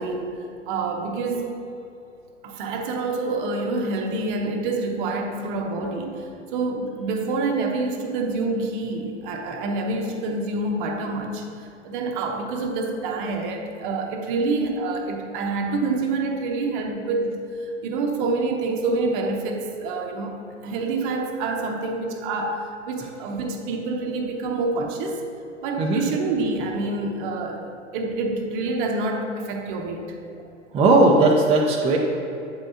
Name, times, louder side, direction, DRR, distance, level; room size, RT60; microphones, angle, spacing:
voice 1, 0.0-1.5 2.4-25.2 25.6-30.0, right 3 dB, 45° right, 3 dB, 0.9 m, -27 dB
voice 2, 30.7-32.0, right 2 dB, 15° right, -1 dB, 0.5 m, -17 dB
8.0 x 5.3 x 2.7 m, 2.7 s
figure-of-eight pair, 100°, 36 cm